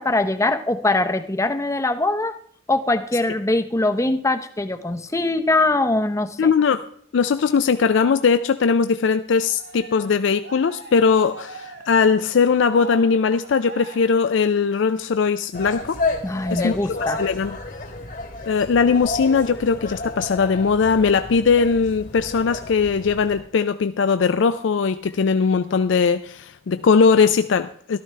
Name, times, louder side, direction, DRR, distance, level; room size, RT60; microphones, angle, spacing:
voice 1, 0.0-2.3 2.7-6.5 16.2-17.2, left 2 dB, 15° left, 8 dB, 0.6 m, -22 dB
voice 2, 6.4-6.9 7.1-16.0 16.5-17.6 18.5-28.0, left 5 dB, 70° left, 10 dB, 0.4 m, -19 dB
Cheering, 9.4-14.9, right 2 dB, 75° right, 6.5 m, -42 dB
sound 1, 15.5-23.4, left 3 dB, 45° left, 1.2 m, -31 dB
13.5 x 12.5 x 3.3 m, 0.62 s
head